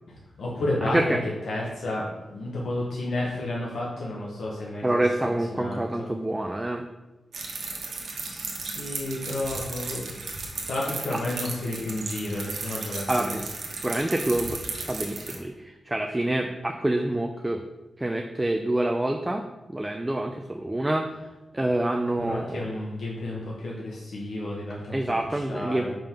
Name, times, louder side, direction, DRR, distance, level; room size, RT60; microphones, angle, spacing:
voice 1, 0.1-1.0 1.5-5.0 5.5-6.2 8.1-10.0 10.6-13.4 22.2-25.0 25.2-26.0, left 1 dB, 85° left, -4 dB, 1.0 m, -32 dB
voice 2, 0.8-1.2 4.8-6.8 11.1-11.2 13.1-13.4 13.8-17.6 18.0-19.4 19.7-21.1 21.5-22.7 24.9-25.9, right 1 dB, 15° right, 4 dB, 0.4 m, -27 dB
sound 1, 7.3-15.4, right 3 dB, 75° right, 1.1 m, -35 dB
5.2 x 3.6 x 5.8 m, 1.1 s
wide cardioid pair, 110°, 0 cm